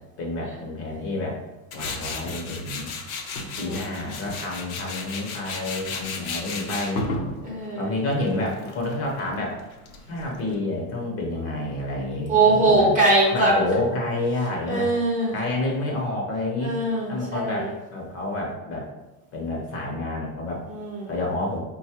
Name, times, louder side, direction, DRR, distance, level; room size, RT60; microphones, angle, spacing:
voice 1, 0.2-1.4 1.7-2.9 3.6-7.1 7.8-9.6 10.1-12.9 13.3-14.9 15.3-16.8 17.1-18.9 19.3-20.6 21.1-21.6, left 2 dB, 35° left, -1 dB, 0.8 m, -29 dB
Tools, 1.7-10.5, left 3 dB, 85° left, 0.7 m, -34 dB
voice 2, 3.6-4.0 7.4-7.9 12.3-13.6 14.7-15.3 16.6-17.7 20.7-21.1, right 2 dB, 20° right, -4 dB, 0.7 m, -22 dB
4.0 x 2.3 x 2.8 m, 1.1 s
supercardioid pair, 125°, 41 cm